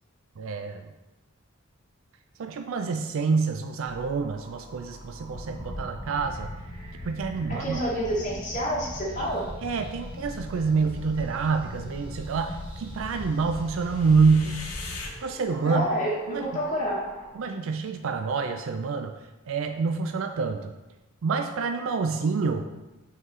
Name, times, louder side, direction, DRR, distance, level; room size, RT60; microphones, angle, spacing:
voice 1, 0.4-0.8 2.4-6.5 7.0-7.8 9.6-14.6 15.2-15.9 16.3-16.5 17.4-19.1 19.5-20.7 21.2-22.6, right 4 dB, 65° right, 6 dB, 0.4 m, -27 dB
sound 1, 3.8-17.3, right 1 dB, 25° right, 1.0 m, -49 dB
sound 2, 5.3-15.1, left 1 dB, 75° left, 1.0 m, -39 dB
voice 2, 7.5-9.4 15.6-17.0, equal, 35° left, -6 dB, 1.0 m, -28 dB
8.0 x 3.8 x 3.2 m, 1.1 s
head